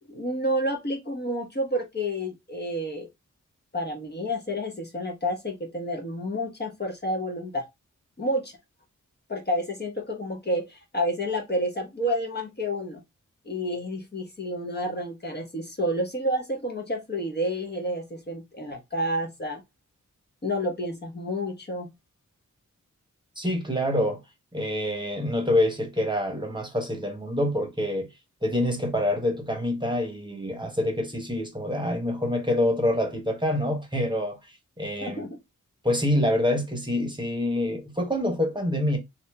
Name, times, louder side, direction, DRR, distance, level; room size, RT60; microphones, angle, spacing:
voice 1, 0.1-3.1 3.7-7.7 8.2-8.5 9.3-13.0 13.5-19.6 20.4-21.9 35.0-35.4, equal, 35° left, 0.9 m, -29 dB
voice 2, 23.4-24.2 24.5-28.1 28.4-34.4 34.8-35.2 35.8-39.0, left 1 dB, 15° right, 1.0 m, -26 dB
2.8 x 2.6 x 3.3 m
wide cardioid pair, 70°, 31 cm